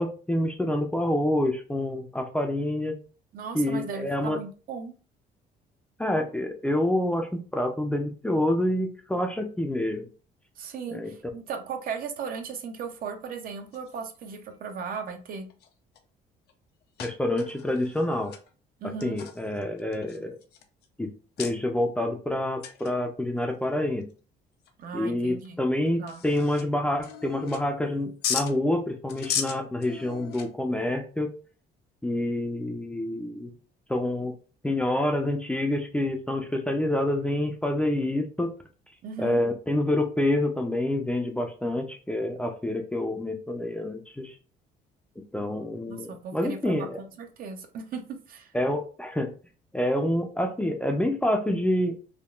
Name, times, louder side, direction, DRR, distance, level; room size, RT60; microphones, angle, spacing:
voice 1, 0.0-3.0 3.5-4.4 6.0-10.1 10.9-11.1 17.0-18.3 19.0-20.4 21.0-21.1 21.4-24.1 24.9-31.3 32.0-33.5 33.9-34.3 34.6-38.5 39.2-44.4 45.3-47.0 48.5-49.3 49.7-51.9, left 1 dB, 5° left, 3 dB, 0.4 m, -27 dB
voice 2, 3.3-4.9 10.6-15.5 18.8-19.2 24.8-25.6 26.0-26.2 39.0-39.4 45.9-46.9 47.2-48.5, right 5 dB, 60° right, 5 dB, 0.6 m, -37 dB
sound 1, 13.7-14.2 15.0-15.1 15.5-16.0 16.5-16.6 17.0-18.5 19.0-20.9 21.4-21.5 22.6-22.9 23.3-23.4 24.0-24.1 24.6-24.7 25.4-25.5 25.9-26.6 27.0-27.9 28.2-28.5 29.1-30.8, left 8 dB, 75° left, 0.6 m, -35 dB
3.6 x 2.3 x 2.3 m, 0.37 s
cardioid pair, 110°, 17 cm